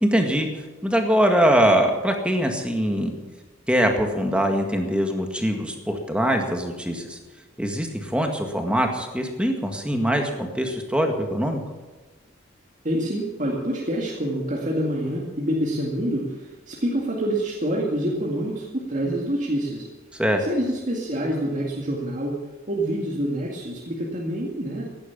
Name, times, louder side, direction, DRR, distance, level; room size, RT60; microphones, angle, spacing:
voice 1, 0.0-3.1 3.7-7.2 7.6-11.6 20.2-20.4, equal, 5° right, 3 dB, 1.9 m, -23 dB
voice 2, 12.8-19.9 20.4-24.8, right 1 dB, 40° right, -3 dB, 2.1 m, -27 dB
15.5 x 11.5 x 7.1 m, 1.2 s
head